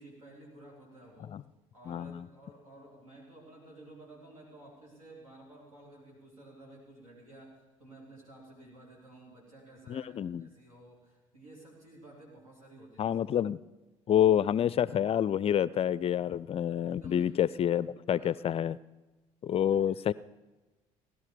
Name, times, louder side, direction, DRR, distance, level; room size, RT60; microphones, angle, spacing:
voice 1, 0.0-1.3 1.7-13.2 16.8-17.3 18.1-18.4 19.9-20.1, right 2 dB, 85° right, -3 dB, 3.2 m, -53 dB
voice 2, 1.9-2.2 9.9-10.4 13.0-13.6 14.1-18.8 19.4-20.1, left 10 dB, 35° left, 20 dB, 0.4 m, -28 dB
17.0 x 11.5 x 5.0 m, 1.2 s
figure-of-eight pair, 55°, 17 cm